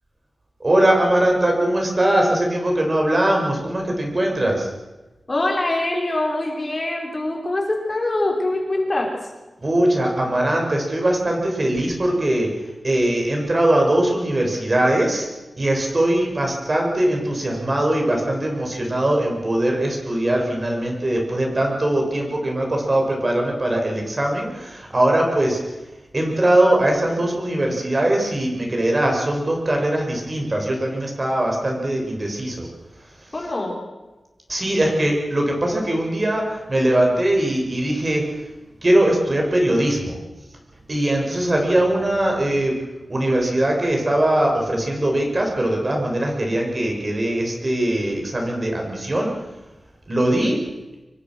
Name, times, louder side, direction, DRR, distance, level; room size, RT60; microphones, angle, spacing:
voice 1, 0.6-4.7 9.6-15.3 15.6-25.6 26.1-32.7 33.2-33.3 34.5-38.5 38.8-40.2 40.9-42.8 43.1-49.3 50.1-50.6, right 1 dB, 35° right, 1 dB, 7.2 m, -21 dB
voice 2, 5.3-9.3 33.3-33.8, left 2 dB, 35° left, 0 dB, 5.7 m, -24 dB
26.0 x 23.5 x 6.5 m, 1.1 s
wide cardioid pair, 110°, 0 cm